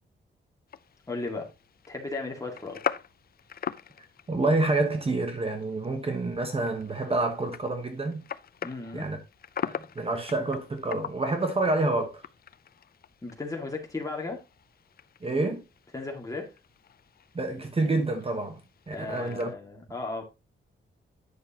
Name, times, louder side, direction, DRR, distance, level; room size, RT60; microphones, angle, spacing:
sound 1, 0.7-19.5, left 8 dB, 50° left, 0.4 m, -42 dB
voice 1, 1.1-1.5 1.9-2.8 8.6-9.1 13.2-14.4 15.9-16.5 18.9-20.2, left 3 dB, 15° left, 2.0 m, -35 dB
voice 2, 4.3-8.2 8.9-9.2 9.6-12.2 15.2-15.6 17.3-19.5, right 2 dB, 30° right, 1.1 m, -28 dB
9.6 x 6.3 x 2.8 m
wide cardioid pair, 125°, 20 cm